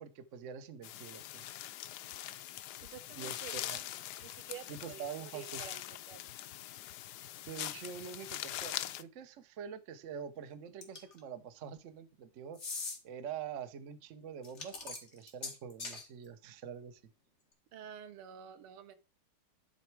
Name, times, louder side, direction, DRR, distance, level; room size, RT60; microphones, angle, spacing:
voice 1, 0.0-1.5 3.1-3.9 4.7-5.7 7.5-12.6 13.0-17.0, right 7 dB, 55° right, 0.8 m, -45 dB
sound 1, 0.8-9.0, left 13 dB, 80° left, 0.9 m, -43 dB
voice 2, 2.9-3.7 4.2-5.8 6.1-6.2 17.7-19.0, right 10 dB, 90° right, 1.9 m, -49 dB
sound 2, 10.8-11.2 12.5-13.0 14.4-16.0, left 4 dB, 35° left, 1.8 m, -41 dB
11.5 x 4.2 x 4.6 m
omnidirectional pair, 2.3 m